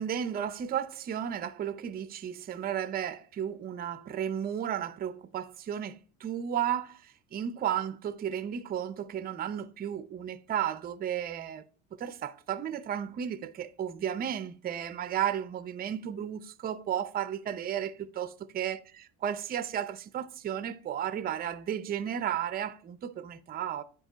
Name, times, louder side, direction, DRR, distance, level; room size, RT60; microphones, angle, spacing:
voice 1, 0.0-11.6 12.0-18.8 19.2-23.8, right 9 dB, 30° right, 0.5 m, -33 dB
9.7 x 5.1 x 3.9 m
cardioid pair, 130°, 32 cm